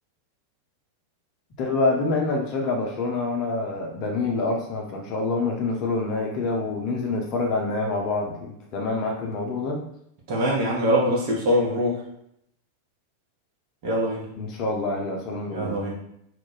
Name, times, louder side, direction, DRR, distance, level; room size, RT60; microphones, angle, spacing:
voice 1, 1.6-9.8 14.4-15.8, left 3 dB, 40° left, 0 dB, 0.6 m, -26 dB
voice 2, 10.3-12.0 13.8-14.3 15.5-15.9, equal, 45° right, -3 dB, 0.9 m, -23 dB
2.4 x 2.1 x 3.9 m, 0.74 s
figure-of-eight pair, 90°, 0 cm